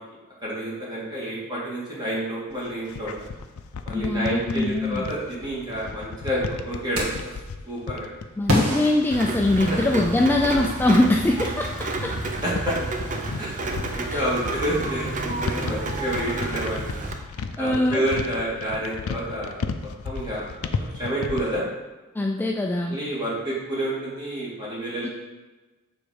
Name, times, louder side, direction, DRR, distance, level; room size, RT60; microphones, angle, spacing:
voice 1, 0.4-3.2 3.8-7.3 7.7-8.1 12.3-13.0 13.4-16.9 17.6-19.7 20.0-20.4 20.8-21.6 22.9-25.1, right 1 dB, 20° right, -6 dB, 1.8 m, -29 dB
sound 1, 2.5-21.6, left 5 dB, 90° left, 0.5 m, -35 dB
voice 2, 3.9-5.1 8.4-12.1 14.1-14.2 17.6-18.1 22.2-23.0 25.0-25.1, left 1 dB, 10° left, 1 dB, 0.3 m, -22 dB
sound 2, 6.9-7.4 8.5-10.0, equal, 80° right, 1.6 m, -27 dB
Rain, 9.1-17.1, right 2 dB, 40° right, 0.6 m, -30 dB
6.8 x 3.6 x 4.9 m, 1.2 s
head